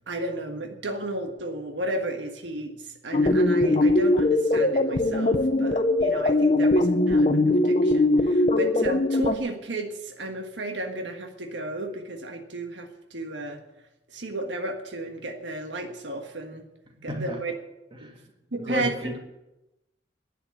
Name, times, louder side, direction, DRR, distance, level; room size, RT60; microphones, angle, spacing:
voice 1, 0.0-13.6 14.1-16.6 17.0-17.5 18.0-18.1 18.5-18.9, right 2 dB, 85° right, 5 dB, 1.5 m, -33 dB
sound 1, 3.1-9.4, left 2 dB, 40° left, 0.8 m, -21 dB
voice 2, 16.9-17.4 17.9-18.3 18.6-19.2, equal, 30° right, 2 dB, 2.4 m, -33 dB
11.0 x 9.3 x 9.4 m, 0.94 s
head